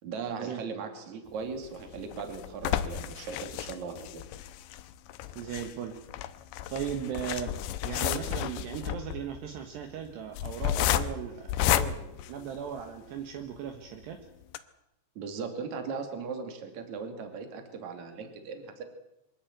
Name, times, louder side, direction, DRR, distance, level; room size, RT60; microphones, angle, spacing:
voice 1, 0.0-4.2 15.1-18.8, right 5 dB, 45° right, 5 dB, 3.4 m, -38 dB
sound 1, 1.6-13.0 13.6-13.7 14.0-14.1 14.4-14.6, left 12 dB, 75° left, 3.0 m, -32 dB
voice 2, 5.4-5.9 6.7-7.5 7.8-12.0 12.3-14.2, right 9 dB, 70° right, 5 dB, 3.3 m, -37 dB
24.0 x 14.0 x 9.3 m, 0.89 s
omnidirectional pair, 5.5 m